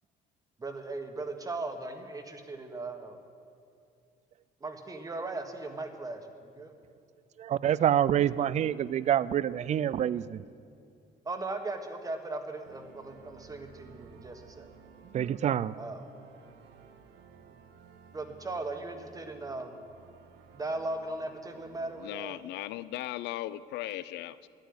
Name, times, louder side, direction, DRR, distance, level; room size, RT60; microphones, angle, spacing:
voice 1, 0.6-3.2 4.6-6.7 11.2-14.7 15.8-16.1 18.1-19.8 20.5-22.4, right 2 dB, 20° right, 6 dB, 1.3 m, -38 dB
voice 2, 7.4-10.4 15.1-15.8, right 10 dB, 45° right, 19 dB, 0.4 m, -27 dB
sound 1, 12.6-22.2, right 6 dB, 85° right, 1.0 m, -55 dB
voice 3, 22.0-24.5, left 14 dB, 85° left, 16 dB, 0.5 m, -37 dB
10.5 x 9.3 x 9.6 m, 2.4 s
cardioid pair, 110°, 17 cm